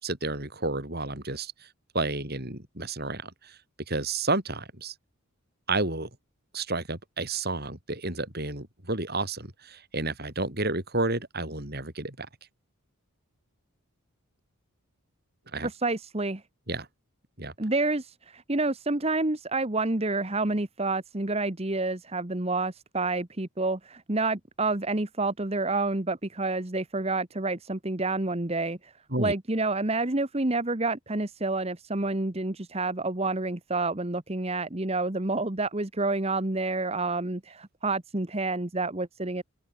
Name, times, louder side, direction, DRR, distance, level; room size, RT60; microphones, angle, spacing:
voice 1, 0.0-1.5 1.9-3.6 3.9-4.9 5.7-6.1 6.5-12.3 15.5-15.7 16.7-16.9 17.4-17.5 29.1-29.3, right 2 dB, 45° right, 6.5 m, -31 dB
voice 2, 15.6-16.4 17.6-28.9 29.2-39.4, right 2 dB, 30° right, 1.2 m, -29 dB
open air
head